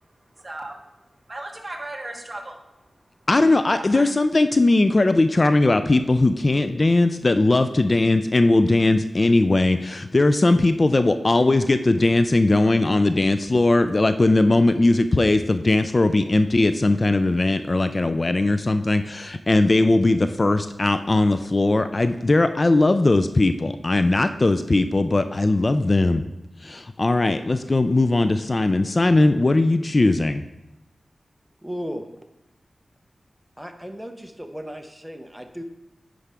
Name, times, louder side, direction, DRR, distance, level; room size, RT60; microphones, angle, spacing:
voice 1, 0.4-0.9 1.3-2.6 3.7-4.1, right 2 dB, 30° right, 2 dB, 1.2 m, -36 dB
voice 2, 3.3-26.2 26.6-30.4, left 2 dB, 40° left, 10 dB, 0.3 m, -19 dB
voice 3, 31.6-32.0 33.6-35.6, equal, 5° right, 5 dB, 0.8 m, -35 dB
9.7 x 4.9 x 3.4 m, 0.93 s
wide cardioid pair, 70°, 0 cm